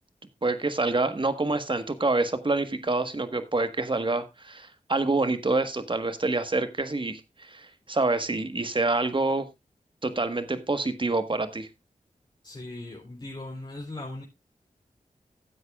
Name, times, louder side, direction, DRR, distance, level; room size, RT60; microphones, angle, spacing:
voice 1, 0.4-9.5 10.0-11.7, right 3 dB, 35° right, 10 dB, 1.5 m, -27 dB
voice 2, 12.4-14.2, left 2 dB, 35° left, -2 dB, 3.8 m, -39 dB
15.5 x 8.1 x 2.4 m, 0.21 s
cardioid pair, 40°, 14 cm